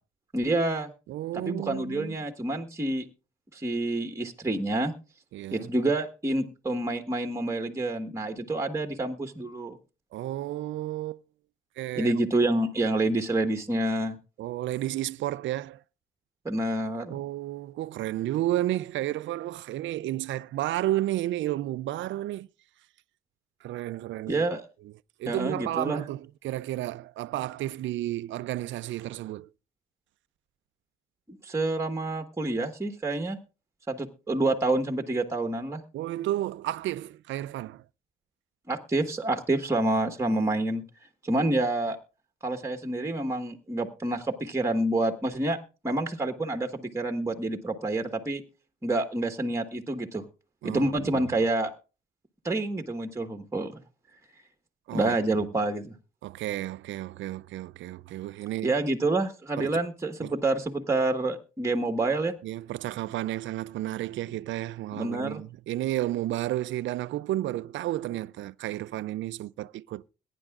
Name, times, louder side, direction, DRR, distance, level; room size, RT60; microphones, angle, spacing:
voice 1, 0.3-0.9 1.3-3.1 3.5-4.9 5.5-9.8 11.9-14.2 16.4-17.2 24.3-24.6 25.3-26.0 31.3-33.4 33.9-35.8 38.7-40.8 41.2-42.0 42.4-45.6 45.8-48.4 48.8-50.2 50.6-51.7 52.4-53.8 54.9-55.9 58.6-62.3 64.9-65.4, right 2 dB, 15° right, 1.4 m, -28 dB
voice 2, 1.1-2.2 5.3-5.7 10.1-11.2 11.8-12.1 14.4-15.8 17.1-22.5 23.6-24.5 25.2-29.5 35.9-37.8 41.3-41.4 50.6-51.2 54.9-55.1 56.2-58.7 59.6-59.8 60.2-60.3 62.4-70.0, right 14 dB, 75° right, 0.5 m, -32 dB
21.5 x 10.0 x 2.4 m
cardioid pair, 90°, 20 cm